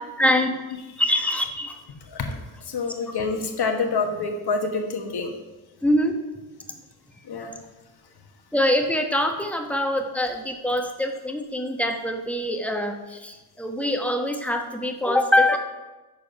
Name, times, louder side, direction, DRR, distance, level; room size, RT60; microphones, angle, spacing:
voice 1, 0.2-0.6 1.0-1.7 5.8-6.2 8.5-15.6, left 1 dB, 5° left, 4 dB, 1.1 m, -24 dB
voice 2, 2.1-5.3 7.2-7.5, left 4 dB, 50° left, 4 dB, 1.3 m, -27 dB
6.8 x 4.8 x 5.5 m, 1.1 s
cardioid pair, 60°, 49 cm